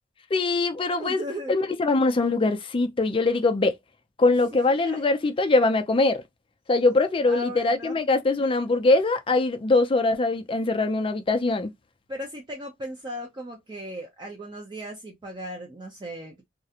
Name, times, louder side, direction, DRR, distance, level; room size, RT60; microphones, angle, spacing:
voice 1, 0.3-1.2 1.5-3.7 4.2-6.2 6.7-11.7, left 3 dB, 30° left, 0.4 m, -22 dB
voice 2, 1.0-1.5 4.3-5.0 7.2-8.0 12.1-16.4, equal, 25° right, 0.5 m, -37 dB
2.4 x 2.1 x 2.7 m
head